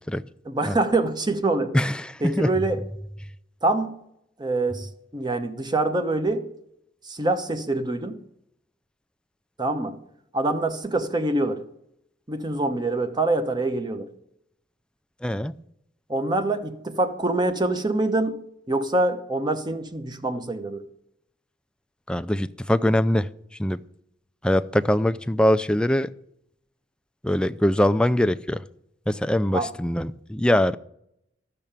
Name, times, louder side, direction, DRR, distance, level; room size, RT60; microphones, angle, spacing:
voice 1, 0.4-1.7 2.2-2.8 3.6-4.0 4.4-6.4 7.0-8.2 9.6-10.0 10.3-11.6 12.3-14.1 16.1-18.4 18.7-20.8 29.5-29.7, right 2 dB, 25° right, 9 dB, 1.0 m, -25 dB
voice 2, 1.7-2.5 15.2-15.6 22.1-23.3 23.6-23.8 24.4-26.1 27.2-28.6 29.1-30.8, left 1 dB, 5° left, 11 dB, 0.4 m, -22 dB
12.5 x 6.7 x 8.8 m, 0.77 s
head